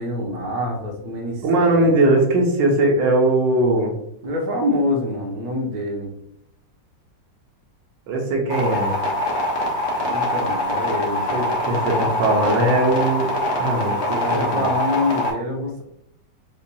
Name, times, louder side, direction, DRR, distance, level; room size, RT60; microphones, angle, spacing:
voice 1, 0.0-1.9 4.2-6.1 10.0-11.3 13.9-15.8, left 1 dB, 65° right, 0 dB, 1.4 m, -26 dB
voice 2, 1.4-3.9 8.1-9.0 11.3-13.3 13.6-14.7, right 2 dB, 85° right, 0 dB, 1.5 m, -20 dB
sound 1, 8.5-15.3, left 1 dB, 65° left, 1.5 m, -23 dB
7.0 x 2.7 x 2.2 m, 0.73 s
omnidirectional pair, 1.9 m